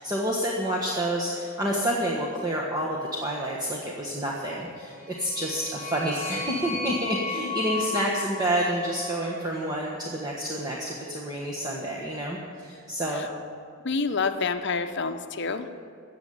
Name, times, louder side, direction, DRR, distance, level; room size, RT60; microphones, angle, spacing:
voice 1, 0.0-13.3, right 1 dB, 20° right, -4 dB, 1.4 m, -29 dB
sound 1, 5.0-9.4, left 4 dB, 50° right, 4.2 m, -35 dB
voice 2, 13.8-15.7, left 4 dB, 55° left, 8 dB, 0.7 m, -28 dB
14.0 x 8.3 x 8.7 m, 2.4 s
head